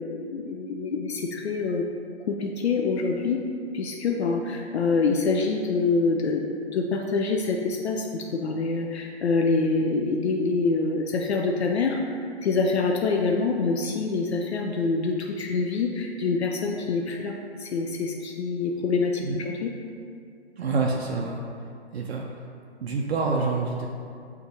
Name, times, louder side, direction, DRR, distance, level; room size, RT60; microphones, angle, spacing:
voice 1, 0.0-1.9 2.3-3.4 3.7-17.3 17.6-19.7, left 4 dB, 70° left, 1 dB, 0.5 m, -26 dB
voice 2, 20.6-21.4 21.9-22.3 22.8-23.9, right 4 dB, 70° right, -1 dB, 0.5 m, -27 dB
6.6 x 2.4 x 2.7 m, 2.4 s
hypercardioid pair, 180°, 34 cm